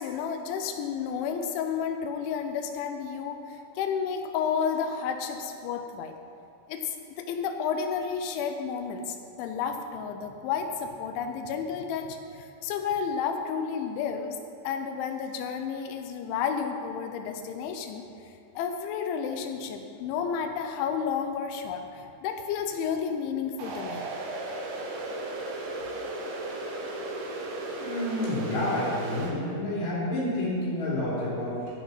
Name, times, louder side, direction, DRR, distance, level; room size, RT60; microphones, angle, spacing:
voice 1, 0.0-6.2 6.7-14.4 14.6-18.0 18.6-24.1, left 6 dB, 90° left, 6 dB, 3.2 m, -31 dB
sound 1, 23.6-29.3, right 2 dB, 85° right, 3.6 m, -35 dB
voice 2, 27.7-31.7, left 1 dB, 45° left, -8 dB, 4.3 m, -29 dB
15.0 x 5.9 x 5.7 m, 2.5 s
omnidirectional pair, 5.2 m